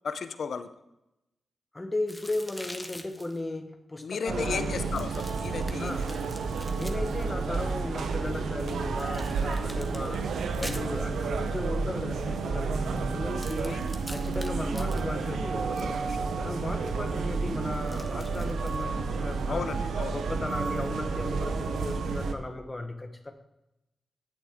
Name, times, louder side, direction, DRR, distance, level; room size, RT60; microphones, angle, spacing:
voice 1, 0.0-0.7 4.0-6.1 13.7-13.8 16.1-16.2 19.5-20.1, left 5 dB, 75° left, 11 dB, 0.5 m, -34 dB
voice 2, 1.7-4.8 5.8-6.1 6.7-16.0 16.4-19.7 20.1-23.3, left 2 dB, 30° left, 6 dB, 1.1 m, -36 dB
sound 1, 2.1-3.4 4.8-7.7 9.0-11.4 13.3-15.9 17.7-18.8, left 1 dB, 10° left, 1.4 m, -46 dB
sound 2, 4.3-22.3, right 4 dB, 85° right, 0.7 m, -31 dB
10.0 x 8.3 x 3.6 m, 0.91 s
cardioid pair, 50°, 0 cm